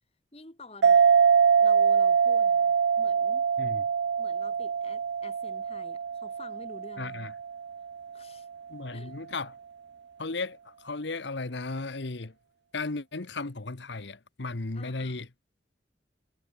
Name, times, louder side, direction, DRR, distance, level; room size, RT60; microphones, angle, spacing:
voice 1, 0.3-1.2 1.6-3.5 4.2-7.3 8.1-8.5 8.9-9.1 14.7-15.3, left 2 dB, 35° left, 5.6 m, -49 dB
sound 1, 0.8-7.9, right 6 dB, 65° right, 0.4 m, -24 dB
voice 2, 7.0-7.3 8.7-9.5 10.2-12.3 12.7-15.3, left 3 dB, 75° left, 1.2 m, -35 dB
head